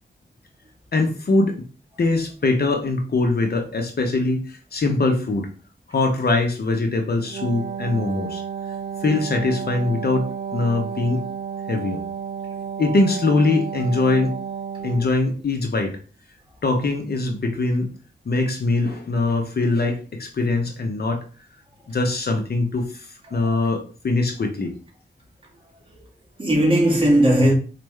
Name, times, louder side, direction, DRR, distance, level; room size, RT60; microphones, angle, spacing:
voice 1, 0.9-1.6 2.0-5.5 5.9-8.4 9.0-11.2 11.7-12.0 12.8-14.4 14.8-16.0 16.6-17.9 18.3-21.2 21.9-23.0 23.3-24.7, left 2 dB, 55° left, 0.8 m, -22 dB
Wind instrument woodwind instrument, 7.2-15.2, right 7 dB, 70° right, 0.5 m, -32 dB
voice 2, 26.4-27.5, right 1 dB, 30° right, 1.7 m, -18 dB
4.5 x 2.5 x 3.2 m
wide cardioid pair, 90°, 19 cm